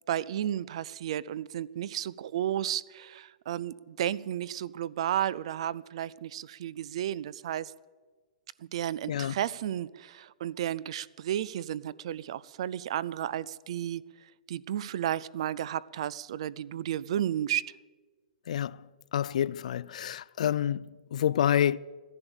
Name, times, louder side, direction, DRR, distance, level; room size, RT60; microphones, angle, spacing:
voice 1, 0.1-7.7 8.7-14.0 14.5-17.7, right 11 dB, 45° right, 0.4 m, -33 dB
voice 2, 18.5-18.8 19.1-21.8, left 10 dB, 55° left, 0.3 m, -28 dB
15.0 x 11.0 x 7.1 m
hypercardioid pair, 170°, 4 cm